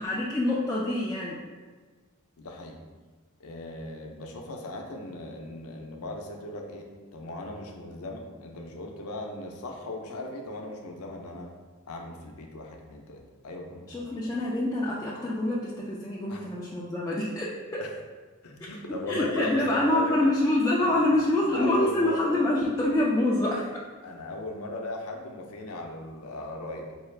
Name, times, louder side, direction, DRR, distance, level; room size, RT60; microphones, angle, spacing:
voice 1, 0.0-1.4 13.9-17.8 19.1-23.7, left 1 dB, 15° left, -6 dB, 0.4 m, -26 dB
voice 2, 2.4-2.8 3.4-11.5 11.9-14.2 16.3-16.5 17.8-17.9 18.4-20.3 20.8-21.1 21.4-22.4 24.0-26.9, left 2 dB, 80° left, 2 dB, 0.6 m, -38 dB
4.4 x 2.4 x 3.2 m, 1.4 s
head